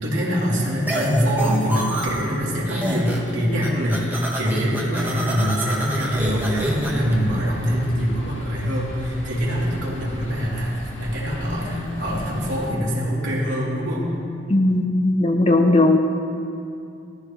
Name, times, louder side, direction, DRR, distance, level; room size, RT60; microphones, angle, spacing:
voice 1, 0.0-14.1, equal, 75° right, -6 dB, 3.4 m, -24 dB
sound 1, 0.9-2.4 2.7-3.3 3.6-7.1, right 1 dB, 10° right, 1.3 m, -29 dB
sound 2, 6.1-12.7, equal, 85° left, 2.1 m, -35 dB
voice 2, 14.5-16.0, left 2 dB, 30° left, 4 dB, 0.7 m, -17 dB
17.5 x 14.5 x 3.3 m, 2.5 s
head